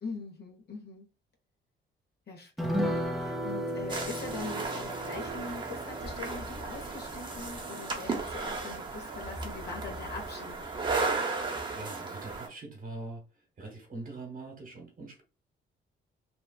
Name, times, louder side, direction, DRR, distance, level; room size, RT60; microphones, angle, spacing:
voice 1, 0.0-1.1 2.3-10.6, left 4 dB, 55° left, 1.0 m, -42 dB
sound 1, 2.6-9.4 9.7-9.8 10.1-10.3, equal, ahead, 0.5 m, -36 dB
sound 2, 3.9-12.5, right 3 dB, 25° right, 0.9 m, -35 dB
voice 2, 11.2-13.2 13.6-15.2, right 2 dB, 45° right, 1.2 m, -43 dB
3.1 x 2.3 x 2.3 m
cardioid pair, 90°, 20 cm